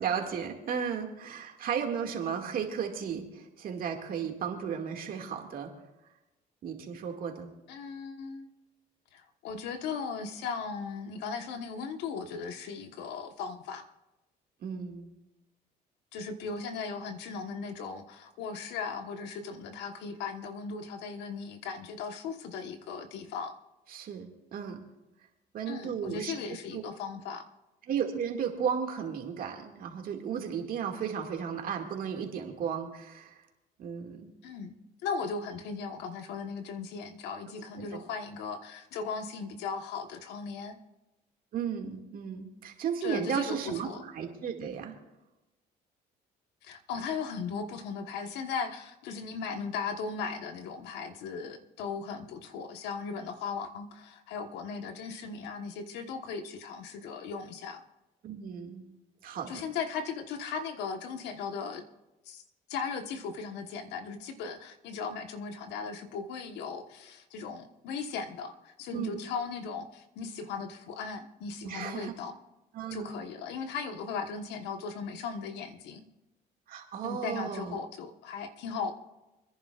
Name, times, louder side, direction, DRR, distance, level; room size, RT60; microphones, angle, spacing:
voice 1, 0.0-5.7 6.6-7.5 14.6-15.1 23.9-24.8 25.5-26.3 26.7-26.8 27.9-33.4 33.8-34.3 37.8-38.0 41.5-45.0 58.2-58.9 59.2-59.7 68.9-69.1 71.6-72.1 72.7-73.1 76.7-77.8, right 7 dB, 60° right, 3 dB, 2.2 m, -34 dB
voice 2, 7.7-8.5 9.1-13.9 16.1-23.6 25.7-27.5 34.4-34.7 35.0-40.8 43.0-44.0 46.6-57.8 59.5-61.8 62.2-62.4 62.7-72.4 72.9-76.1 77.0-78.9, left 5 dB, 90° left, 6 dB, 1.3 m, -37 dB
29.0 x 10.5 x 2.5 m, 0.98 s
cardioid pair, 110°, 17 cm